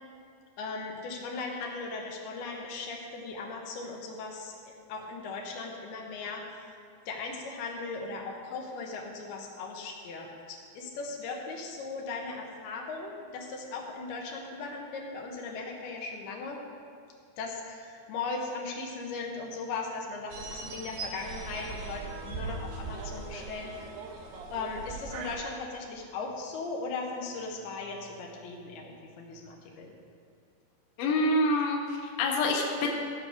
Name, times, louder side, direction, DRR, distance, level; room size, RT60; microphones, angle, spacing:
voice 1, 0.6-4.5 4.9-6.4 7.1-16.6 17.4-23.9 24.5-29.9, left 3 dB, 85° left, 0 dB, 3.0 m, -38 dB
sound 1, 20.3-25.4, right 4 dB, 85° right, 3.1 m, -40 dB
voice 2, 31.0-32.9, left 1 dB, 65° left, 0 dB, 2.5 m, -26 dB
14.5 x 5.0 x 6.5 m, 2.3 s
omnidirectional pair, 4.5 m